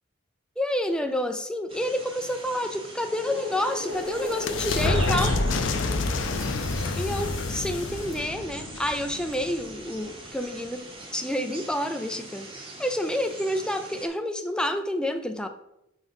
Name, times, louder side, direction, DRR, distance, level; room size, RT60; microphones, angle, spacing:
voice 1, 0.6-5.4 6.9-12.5 12.8-15.5, left 1 dB, 5° left, 0.4 m, -29 dB
sound 1, 1.7-14.1, right 1 dB, 30° right, 1.2 m, -39 dB
sound 2, 3.3-9.8, left 3 dB, 70° left, 0.5 m, -28 dB
5.0 x 3.9 x 5.3 m
head